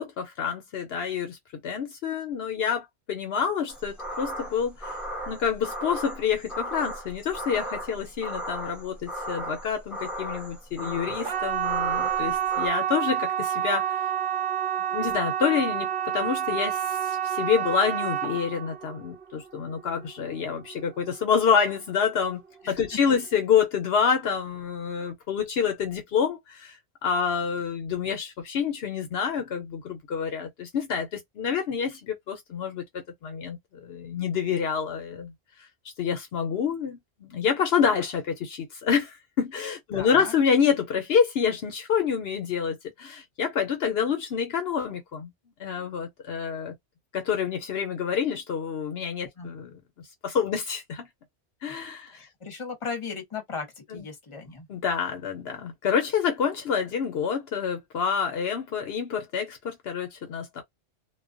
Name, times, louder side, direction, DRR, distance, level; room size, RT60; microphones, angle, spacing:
voice 1, 0.0-1.4 1.6-5.0 5.3-14.0 14.9-22.4 22.7-26.8 27.0-35.3 36.0-45.3 45.6-46.7 47.1-49.8 50.2-51.1 51.6-52.3 53.9-54.1 54.7-60.6, left 7 dB, 70° left, 0.9 m, -27 dB
sound 1, 3.7-12.7, equal, ahead, 0.7 m, -36 dB
sound 2, 11.2-22.0 22.3-22.9 23.3-23.4, right 10 dB, 60° right, 0.8 m, -29 dB
voice 2, 39.9-40.3 49.4-49.5 52.1-54.7, left 5 dB, 30° left, 0.9 m, -37 dB
2.3 x 2.3 x 2.5 m
omnidirectional pair, 1.1 m